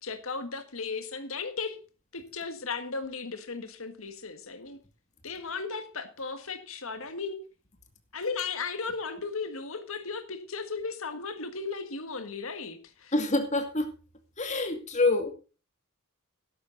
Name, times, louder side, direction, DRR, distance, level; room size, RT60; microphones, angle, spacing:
voice 1, 0.0-1.8 2.1-4.8 5.2-7.4 8.1-13.1, left 4 dB, 65° left, 1.8 m, -36 dB
voice 2, 13.1-13.9 14.4-15.3, left 2 dB, 35° left, 2.3 m, -26 dB
13.0 x 11.0 x 4.0 m
head